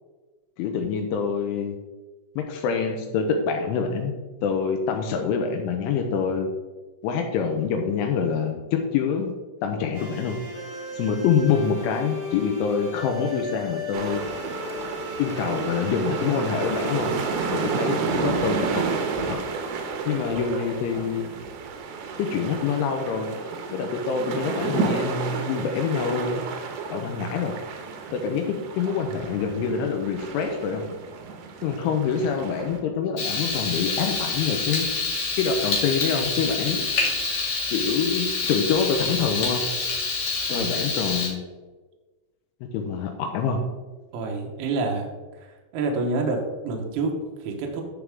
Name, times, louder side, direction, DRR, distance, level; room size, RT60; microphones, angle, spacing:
voice 1, 0.6-1.8 2.4-4.1 4.4-6.5 7.0-9.3 9.6-10.4 10.9-14.2 15.2-17.1 17.5-18.9 19.2-19.4 20.1-21.3 22.2-23.3 23.7-26.4 26.9-27.5 28.1-30.8 31.6-34.9 35.4-36.9 37.7-39.6 40.5-41.4 42.7-43.6, left 6 dB, 80° left, 4 dB, 3.1 m, -26 dB
sound 1, 9.9-19.8, left 2 dB, 45° right, 4.2 m, -36 dB
sound 2, 13.9-32.8, right 5 dB, 90° right, 2.2 m, -31 dB
Frying (food), 33.2-41.3, left 3 dB, 55° left, 2.4 m, -27 dB
voice 2, 44.1-45.1 45.4-45.5 45.7-47.8, right 3 dB, 70° right, 1 dB, 2.5 m, -28 dB
13.5 x 4.7 x 3.6 m, 1.2 s
omnidirectional pair, 5.9 m